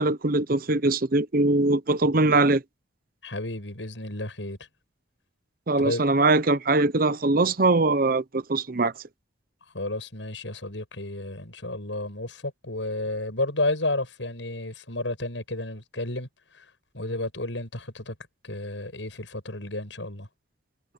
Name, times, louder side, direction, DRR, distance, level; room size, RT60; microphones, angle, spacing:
voice 1, 0.0-2.6 5.7-8.9, right 2 dB, 50° right, 0.8 m, -22 dB
voice 2, 3.2-4.6 5.8-6.1 9.7-16.3 16.5-16.6 16.9-18.1 18.4-20.3, left 2 dB, 85° left, 7.7 m, -31 dB
head